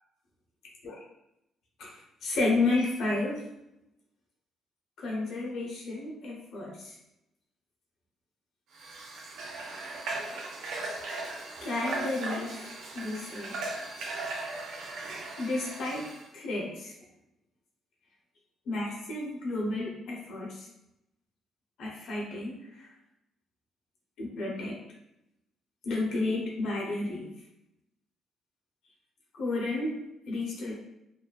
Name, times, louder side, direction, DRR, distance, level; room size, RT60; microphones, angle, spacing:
voice 1, 1.8-3.4 5.0-6.9 11.6-13.6 15.4-16.1 16.3-16.9 18.7-20.7 21.8-22.9 24.2-24.8 25.8-27.3 29.3-30.0 30.3-30.7, left 2 dB, 75° left, -3 dB, 0.7 m, -32 dB
Water / Water tap faucet, 8.7-16.3, right 2 dB, 85° right, 0.4 m, -38 dB
2.6 x 2.3 x 2.2 m, 0.87 s
cardioid pair, 90°, 0 cm